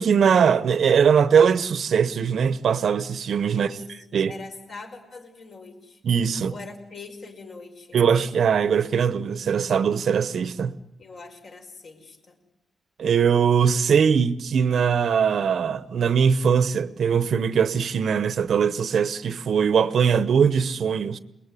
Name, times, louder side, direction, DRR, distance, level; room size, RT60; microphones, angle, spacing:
voice 1, 0.0-3.8 4.1-4.3 6.0-6.5 7.9-10.7 13.0-21.2, right 7 dB, 60° right, 0.9 m, -21 dB
voice 2, 3.5-6.0 6.5-8.0 11.0-12.4, left 3 dB, 50° left, 5.4 m, -43 dB
28.0 x 21.0 x 9.9 m
wide cardioid pair, 160°, 0 cm